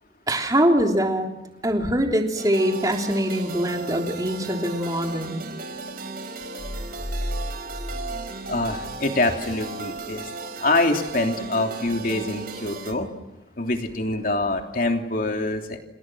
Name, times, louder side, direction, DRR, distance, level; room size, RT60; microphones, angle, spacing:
voice 1, 0.3-1.3 1.6-5.4, equal, 20° right, 2 dB, 3.4 m, -23 dB
sound 1, 2.3-12.9, right 3 dB, 55° right, 4.8 m, -36 dB
sound 2, 6.6-9.6, equal, 20° left, 1.3 m, -34 dB
voice 2, 8.5-10.3 10.6-13.1 13.6-15.8, left 2 dB, 50° left, 3 dB, 3.1 m, -25 dB
29.5 x 28.5 x 6.3 m, 0.96 s
head